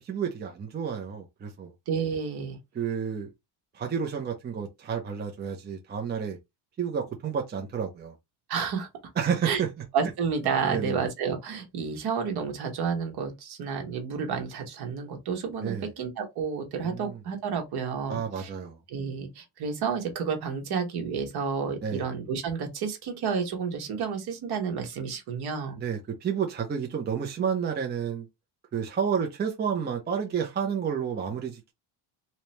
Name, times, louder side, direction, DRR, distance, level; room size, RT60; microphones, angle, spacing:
voice 1, 0.0-1.7 2.7-3.3 3.7-6.4 6.8-8.1 9.2-9.7 10.7-11.0 15.6-15.9 16.8-17.2 18.1-18.8 21.8-22.0 25.8-28.3 28.7-31.7, right 7 dB, 20° right, 0.6 m, -30 dB
voice 2, 1.9-2.6 8.5-8.9 9.4-9.6 9.9-18.5 18.9-25.8, right 6 dB, 55° right, 1.4 m, -30 dB
3.3 x 2.9 x 3.0 m
cardioid pair, 135°, 47 cm